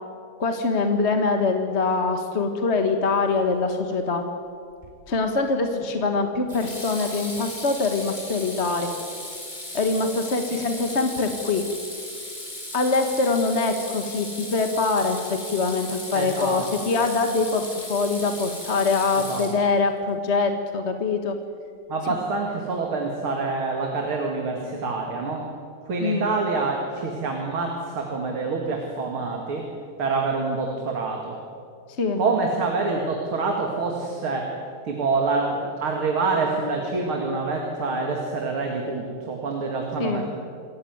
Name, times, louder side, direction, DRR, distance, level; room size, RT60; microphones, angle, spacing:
voice 1, 0.4-4.2 5.1-8.9 9.7-11.6 12.7-17.6 17.9-21.3 26.0-26.3 32.0-32.2 40.0-40.2, left 3 dB, 35° left, 5 dB, 1.5 m, -24 dB
Water tap faucet / Sink (filling or washing), 4.8-5.2 6.5-19.9, left 1 dB, 20° left, 4.6 m, -37 dB
voice 2, 16.1-16.7 19.3-19.5 21.9-25.5 25.9-29.7 30.0-31.4 32.2-34.5 34.8-40.3, right 3 dB, 85° right, 1 dB, 3.1 m, -26 dB
27.0 x 14.5 x 9.5 m, 2.3 s
omnidirectional pair, 2.3 m